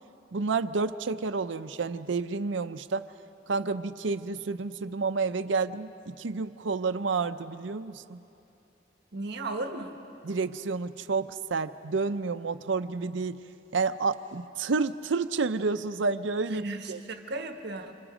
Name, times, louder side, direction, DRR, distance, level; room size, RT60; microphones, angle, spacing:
voice 1, 0.3-3.1 3.5-8.2 10.2-13.4 13.7-17.0, right 4 dB, 80° right, 8 dB, 0.6 m, -30 dB
voice 2, 9.1-9.9 16.5-17.9, right 2 dB, 60° right, 5 dB, 1.3 m, -35 dB
30.0 x 26.5 x 5.0 m, 2.9 s
head